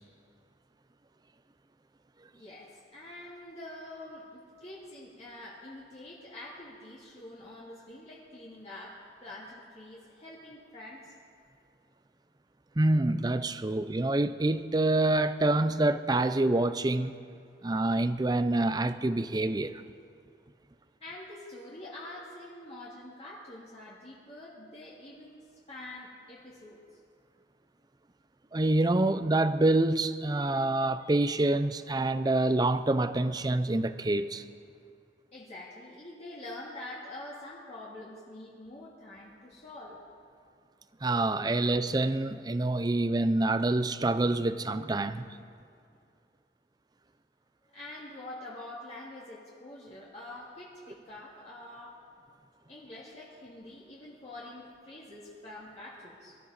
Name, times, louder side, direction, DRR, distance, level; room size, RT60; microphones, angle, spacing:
voice 1, 2.3-11.1 21.0-25.4 25.7-26.8 35.3-40.0 41.4-41.5 47.7-52.0 52.7-56.4, left 1 dB, 35° left, 2.1 m, -46 dB
voice 2, 12.8-17.1 17.6-19.8 28.5-34.4 41.0-45.3, right 2 dB, 20° right, 0.5 m, -26 dB
24.0 x 13.0 x 4.1 m
head